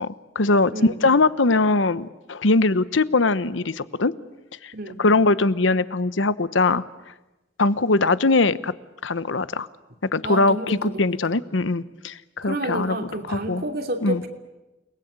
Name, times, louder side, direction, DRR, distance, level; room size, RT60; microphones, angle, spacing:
voice 1, 0.0-4.1 4.6-4.7 5.0-6.8 7.6-8.7 9.0-9.7 10.1-13.0 13.3-13.6 14.0-14.2, left 3 dB, 85° left, 16 dB, 1.0 m, -21 dB
voice 2, 0.7-1.1 4.7-5.0 10.2-11.4 12.4-14.3, right 1 dB, 55° right, 6 dB, 2.9 m, -30 dB
29.5 x 20.5 x 8.8 m, 1.0 s
head